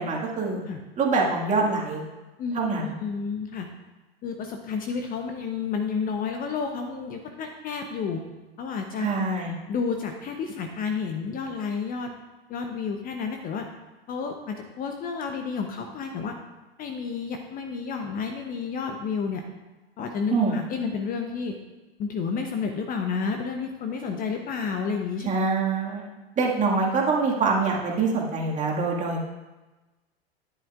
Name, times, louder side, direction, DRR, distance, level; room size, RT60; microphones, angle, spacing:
voice 1, 0.0-0.6 1.0-2.0 2.5-3.0 9.0-9.5 20.3-20.6 25.2-26.1 26.4-29.3, right 4 dB, 25° right, -2 dB, 1.9 m, -25 dB
voice 2, 2.4-3.7 4.2-8.2 8.6-9.1 9.7-12.1 12.5-13.7 14.1-16.3 16.8-19.4 20.0-21.6 22.0-25.3, left 5 dB, 30° left, 4 dB, 0.9 m, -31 dB
12.0 x 10.5 x 2.5 m, 1.2 s
figure-of-eight pair, 90°, 31 cm